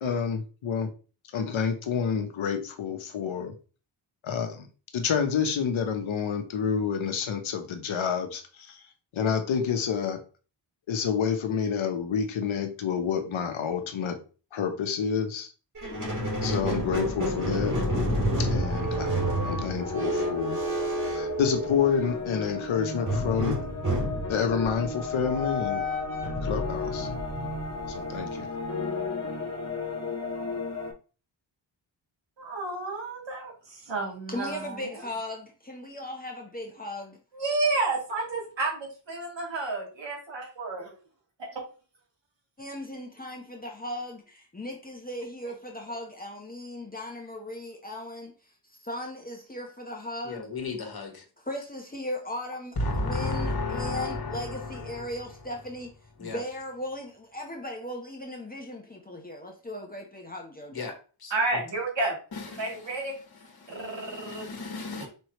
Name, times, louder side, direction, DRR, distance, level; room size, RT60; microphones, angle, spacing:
voice 1, 0.0-0.9 1.3-3.6 4.2-4.7 4.9-8.8 9.1-10.2 10.9-14.2 14.5-15.5 16.4-17.8 18.4-20.6 21.0-23.6 24.3-25.8 26.4-27.1 27.9-28.5, left 7 dB, 70° left, 6 dB, 1.0 m, -28 dB
sound 1, 15.8-30.9, left 4 dB, 35° left, 1.6 m, -35 dB
Squeak, 15.8-22.1 23.0-28.2, right 1 dB, 40° right, 2.3 m, -30 dB
voice 2, 32.4-34.9 37.3-40.9 41.4-41.6 61.3-62.2 62.6-63.1 63.7-64.5 65.0-65.1, right 3 dB, 60° right, -1 dB, 2.4 m, -31 dB
voice 3, 34.3-37.2 42.6-50.5 51.4-52.8 53.0-55.9 56.2-60.9, left 1 dB, 20° left, 0 dB, 1.0 m, -37 dB
voice 4, 50.2-51.2 52.8-55.1 56.2-56.4 60.7-60.9 61.2-61.6 62.3-62.7 63.6-65.1, left 2 dB, 50° left, 4 dB, 1.6 m, -33 dB
5.4 x 3.1 x 3.1 m, 0.36 s
cardioid pair, 70°, 48 cm